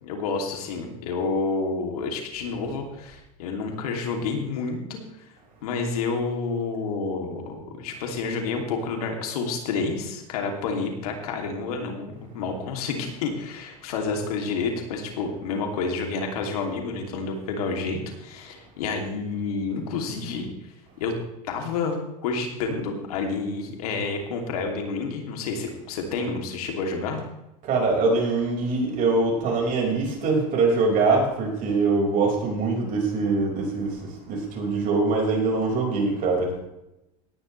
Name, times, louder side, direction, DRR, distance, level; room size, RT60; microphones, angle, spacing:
voice 1, 0.0-5.3 5.6-20.5 21.0-21.1 21.5-22.0 22.2-27.2, left 4 dB, 85° left, 2 dB, 2.8 m, -29 dB
voice 2, 27.7-33.9 34.3-36.5, right 3 dB, 45° right, 0 dB, 5.3 m, -23 dB
17.5 x 10.5 x 3.3 m, 0.91 s
supercardioid pair, 120°, 19 cm